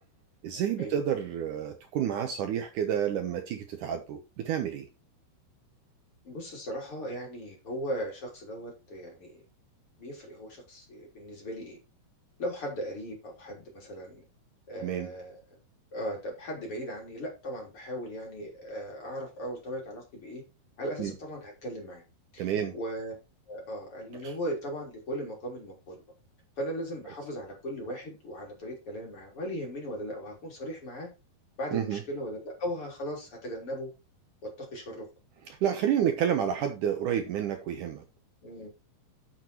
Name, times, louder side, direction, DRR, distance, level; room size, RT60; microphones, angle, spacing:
voice 1, 0.4-4.9 14.8-15.1 21.0-21.1 22.4-22.7 24.2-24.3 31.7-32.0 35.5-38.0, right 9 dB, 70° right, 2.3 m, -29 dB
voice 2, 6.2-9.4 10.0-11.8 12.4-14.2 14.7-15.3 15.9-20.4 20.8-22.0 22.3-22.5 22.7-23.1 23.5-26.0 26.6-31.1 31.6-33.9 34.4-35.1 38.4-38.7, equal, 35° left, 4.3 m, -37 dB
8.9 x 7.9 x 4.5 m
omnidirectional pair, 4.4 m